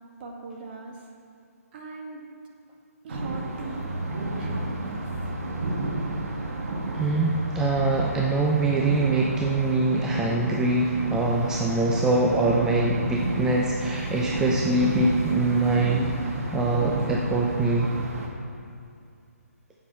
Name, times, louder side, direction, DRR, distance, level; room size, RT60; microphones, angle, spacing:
voice 1, 0.2-1.1 1.7-2.2 3.0-5.1, right 3 dB, 40° right, 0 dB, 1.9 m, -40 dB
sound 1, 3.1-18.3, right 2 dB, 70° right, 2.3 m, -31 dB
voice 2, 6.9-17.9, right 2 dB, 5° right, -3 dB, 0.6 m, -24 dB
7.3 x 7.3 x 7.3 m, 2.4 s
figure-of-eight pair, 140°, 8 cm